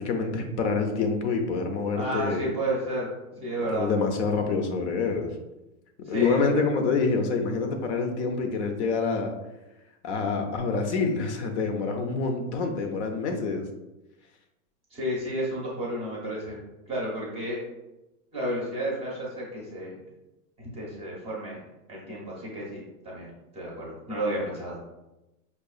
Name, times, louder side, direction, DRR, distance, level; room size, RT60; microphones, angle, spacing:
voice 1, 0.0-2.5 3.6-5.3 6.1-9.3 10.0-13.7, left 4 dB, 55° left, 4 dB, 0.6 m, -27 dB
voice 2, 2.0-3.1 3.4-3.9 6.1-6.4 14.9-16.6 16.9-17.6 18.3-20.0 20.7-21.6 21.9-24.8, right 1 dB, 15° right, -4 dB, 0.6 m, -31 dB
5.4 x 2.3 x 2.3 m, 0.98 s
supercardioid pair, 155°, 44 cm